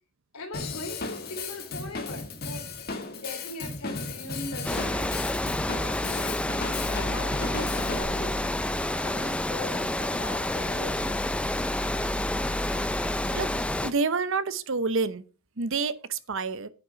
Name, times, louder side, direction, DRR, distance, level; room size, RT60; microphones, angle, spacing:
voice 1, 0.3-2.6 3.1-5.2 5.7-6.4 6.8-8.4 9.0-11.7, left 2 dB, 90° left, 3.1 m, -40 dB
Drum kit / Drum, 0.5-8.0, left 3 dB, 45° left, 1.7 m, -35 dB
Water, 4.6-13.9, left 1 dB, 5° left, 0.4 m, -29 dB
voice 2, 13.8-15.2 15.6-16.7, right 4 dB, 60° right, 0.8 m, -28 dB
9.6 x 6.1 x 5.6 m
head